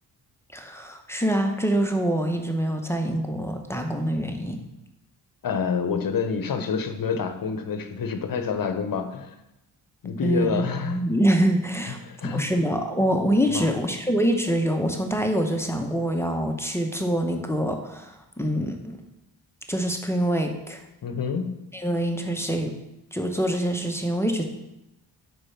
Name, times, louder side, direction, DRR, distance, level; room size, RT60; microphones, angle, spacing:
voice 1, 0.5-4.6 10.2-12.0 12.2-19.0 19.7-20.8 21.7-22.7 23.1-24.4, right 1 dB, 5° left, 4 dB, 0.9 m, -25 dB
voice 2, 5.4-9.3 10.0-11.0 12.0-12.5 13.5-13.8 21.0-21.6, left 6 dB, 45° left, 8 dB, 1.0 m, -28 dB
4.9 x 4.7 x 5.8 m, 0.91 s
supercardioid pair, 55°, 46 cm